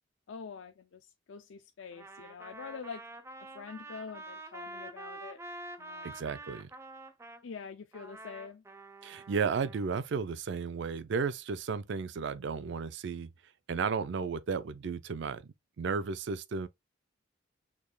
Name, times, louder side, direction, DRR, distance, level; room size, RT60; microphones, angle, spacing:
voice 1, 0.3-3.0 3.4-5.4 5.8-6.1 7.4-8.6, left 5 dB, 80° left, 0.4 m, -45 dB
Trumpet, 1.9-7.4 7.9-9.9, right 2 dB, 15° right, 0.5 m, -47 dB
voice 2, 6.0-6.7 9.0-13.3 13.7-15.4 15.8-16.7, right 5 dB, 65° right, 0.4 m, -33 dB
6.5 x 3.5 x 2.3 m
head